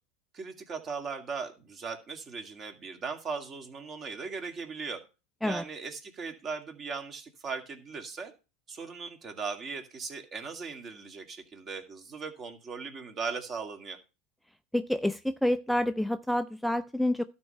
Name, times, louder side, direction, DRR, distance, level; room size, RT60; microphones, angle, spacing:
voice 1, 0.3-5.0 5.4-8.3 8.7-14.0, right 5 dB, 35° right, 2.2 m, -38 dB
voice 2, 14.7-17.2, left 1 dB, ahead, 0.4 m, -28 dB
12.0 x 4.4 x 6.6 m
hypercardioid pair, 100°, 0 cm